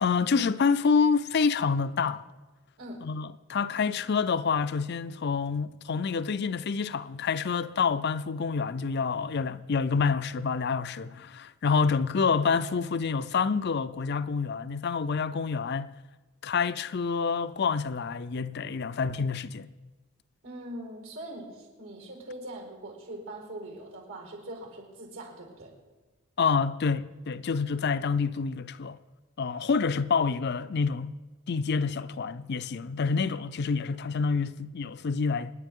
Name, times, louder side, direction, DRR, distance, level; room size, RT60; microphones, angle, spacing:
voice 1, 0.0-2.2 3.0-15.9 16.4-19.7 26.4-29.0 29.4-31.1 31.5-35.5, left 5 dB, 50° left, 0.5 m, -27 dB
voice 2, 20.4-25.7, right 1 dB, 75° right, 4.7 m, -42 dB
28.0 x 9.8 x 3.7 m
head